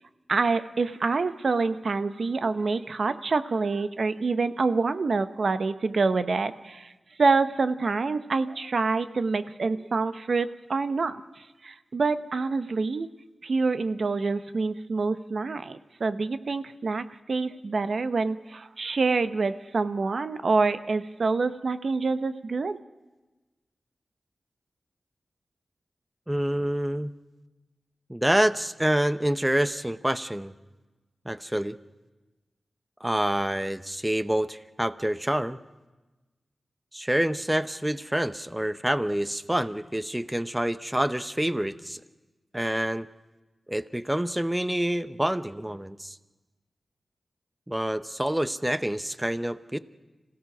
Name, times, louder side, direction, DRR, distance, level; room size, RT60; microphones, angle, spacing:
voice 1, 0.3-6.9 7.2-13.1 13.4-22.8, right 4 dB, 70° right, 11 dB, 0.9 m, -26 dB
voice 2, 26.3-27.1 28.1-30.5 31.2-31.8 33.0-35.6 36.9-42.0 42.5-43.1 43.7-46.2 47.7-49.8, right 1 dB, 10° right, 13 dB, 0.8 m, -27 dB
26.5 x 16.5 x 6.1 m, 1.2 s
cardioid pair, 60°, 0 cm